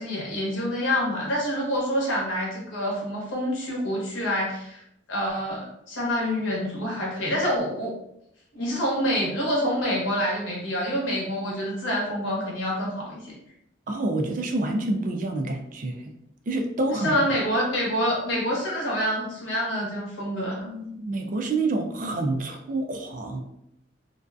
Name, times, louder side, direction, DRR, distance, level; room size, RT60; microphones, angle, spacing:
voice 1, 0.0-4.8 5.1-7.9 8.5-13.3 16.9-20.7, equal, 85° left, -4 dB, 0.9 m, -27 dB
voice 2, 13.9-15.9 16.5-17.2 20.5-23.4, right 2 dB, 45° right, 4 dB, 0.3 m, -28 dB
2.5 x 2.3 x 2.3 m, 0.79 s
head